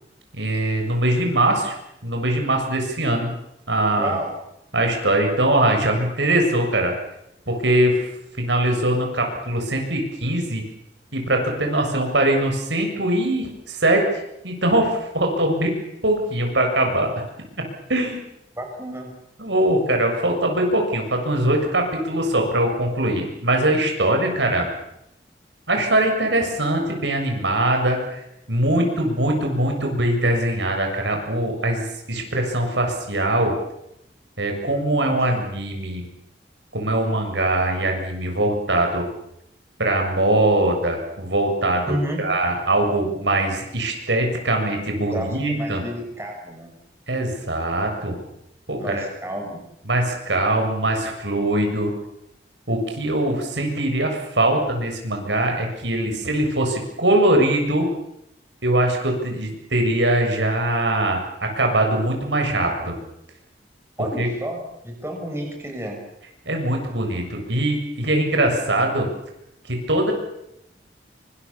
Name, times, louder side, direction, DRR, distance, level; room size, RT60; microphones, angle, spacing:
voice 1, 0.3-1.8 2.0-3.3 3.7-4.2 4.7-6.9 7.5-8.1 8.4-10.6 11.1-14.0 14.4-15.7 16.0-17.1 17.9-18.2 19.4-24.7 25.7-28.2 28.5-33.5 34.4-36.0 36.7-39.1 39.8-45.8 47.1-48.2 48.7-49.1 49.9-51.9 52.7-57.9 58.6-62.9 64.2-64.3 66.5-69.1 69.7-70.1, right 1 dB, 80° right, 3 dB, 7.0 m, -22 dB
voice 2, 4.0-4.3 18.5-19.1 28.8-28.9 35.0-35.2 41.8-42.2 45.1-46.7 48.8-49.6 64.0-66.0, equal, 15° right, 1 dB, 6.3 m, -31 dB
26.5 x 25.0 x 7.2 m, 0.81 s
head